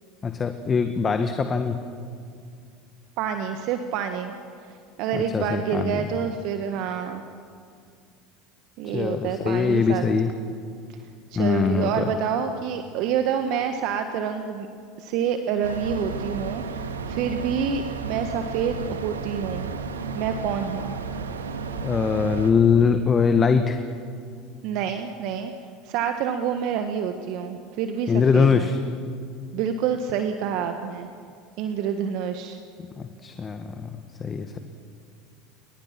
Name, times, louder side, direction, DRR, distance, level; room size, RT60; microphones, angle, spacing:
voice 1, 0.2-1.8 5.1-6.1 8.8-10.3 11.3-12.1 21.8-23.8 28.1-28.8 33.0-34.6, left 5 dB, 30° left, 7 dB, 1.6 m, -22 dB
voice 2, 3.2-4.3 5.0-7.2 8.8-10.0 11.3-14.7 15.0-19.7 20.1-21.0 24.6-25.5 25.8-28.7 29.5-31.1 31.6-32.6, right 7 dB, 60° right, 7 dB, 1.5 m, -27 dB
sound 1, 15.6-22.5, right 5 dB, 85° right, 1.8 m, -33 dB
29.0 x 22.5 x 6.1 m, 2.3 s
hypercardioid pair, 75°, 0 cm